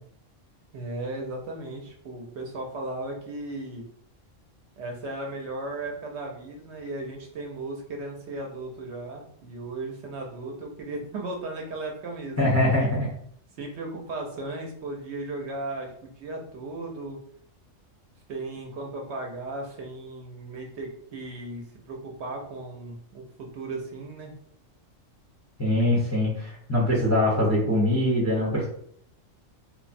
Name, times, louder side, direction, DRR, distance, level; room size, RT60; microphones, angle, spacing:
voice 1, 0.7-3.9 4.8-12.9 13.6-17.2 18.3-24.3, right 2 dB, 65° right, 1 dB, 0.8 m, -36 dB
voice 2, 12.4-13.1 25.6-28.7, left 1 dB, 20° left, -4 dB, 0.5 m, -23 dB
3.0 x 2.0 x 2.5 m, 0.64 s
omnidirectional pair, 1.3 m